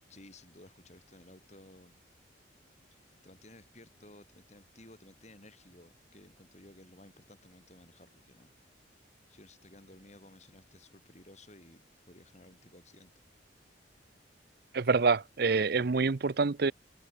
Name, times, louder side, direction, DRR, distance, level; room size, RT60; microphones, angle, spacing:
voice 1, 0.1-2.0 2.9-8.5 9.3-13.1, left 1 dB, 35° left, 7.1 m, -56 dB
voice 2, 14.7-16.7, right 4 dB, 55° right, 0.6 m, -26 dB
head